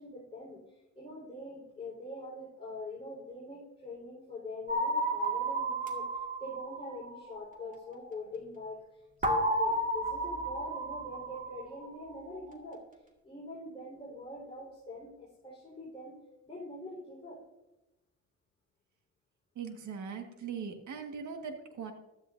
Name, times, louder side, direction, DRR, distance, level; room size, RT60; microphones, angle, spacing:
voice 1, 0.0-6.1 6.4-12.8 13.2-16.2 16.4-17.4, left 2 dB, 20° left, -7 dB, 4.3 m, -44 dB
sound 1, 4.7-7.6 9.2-12.0, right 1 dB, 25° right, 2.1 m, -33 dB
voice 2, 19.5-21.9, right 6 dB, 70° right, 5 dB, 1.6 m, -40 dB
14.5 x 12.5 x 2.6 m, 1.0 s
cardioid pair, 90°, 30 cm